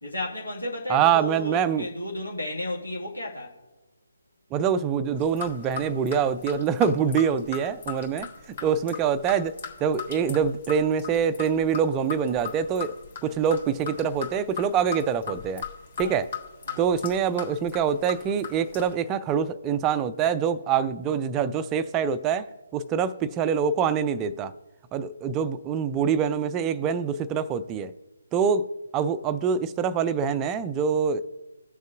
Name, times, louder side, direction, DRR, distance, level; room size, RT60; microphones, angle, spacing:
voice 1, 0.0-3.5 8.6-8.8 16.0-16.2 16.7-16.9, left 1 dB, 85° left, 1.8 m, -33 dB
voice 2, 0.9-1.9 4.5-8.3 8.6-9.5 9.8-12.9 13.2-15.6 16.0-16.3 16.8-22.5 22.7-24.5 24.9-27.9 28.3-28.7 28.9-31.2, right 7 dB, 15° right, 0.4 m, -25 dB
sound 1, 5.2-18.9, left 7 dB, 45° left, 2.1 m, -39 dB
17.5 x 6.4 x 2.4 m
figure-of-eight pair, 145°, 0 cm